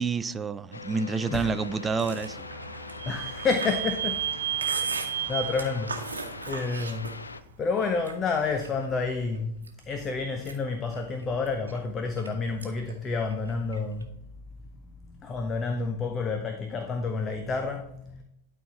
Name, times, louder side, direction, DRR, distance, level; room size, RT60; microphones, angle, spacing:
voice 1, 0.0-2.5, right 5 dB, 15° right, 0.4 m, -28 dB
sound 1, 0.7-7.4, left 4 dB, 75° left, 0.4 m, -42 dB
voice 2, 1.3-1.6 3.1-4.2 4.5-6.2 6.5-9.5 9.9-14.1 15.0-18.2, left 4 dB, 25° left, 0.7 m, -30 dB
Vehicle / Squeak, 1.7-7.2, right 11 dB, 50° right, 0.8 m, -34 dB
Chewing mastication, 1.9-7.4 7.8-8.9 9.3-9.9 10.3-12.3 12.6-12.9 13.2-14.0, right 4 dB, 75° right, 1.1 m, -38 dB
12.0 x 4.3 x 4.1 m
figure-of-eight pair, 90°, 0 cm